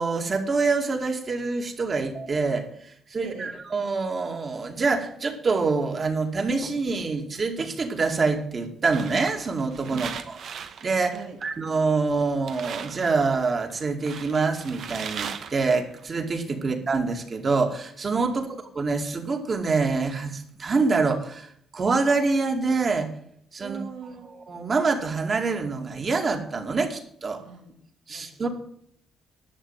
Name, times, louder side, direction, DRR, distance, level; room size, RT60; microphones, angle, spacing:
voice 1, 0.0-10.1 10.5-11.1 11.4-18.5 18.8-23.1 23.5-23.8 24.3-27.4 28.1-28.5, right 4 dB, 40° right, 3 dB, 2.4 m, -26 dB
voice 2, 3.2-3.6 9.9-10.1 11.1-11.4 16.6-16.8 18.3-18.5 23.6-24.3 27.4-27.7 28.1-28.5, right 7 dB, 85° right, 2 dB, 2.8 m, -40 dB
sound 1, 8.9-11.8 12.1-12.2 12.5-16.1, right 7 dB, 65° right, 1.2 m, -38 dB
11.5 x 7.0 x 7.4 m, 0.67 s
cardioid pair, 90°, 0 cm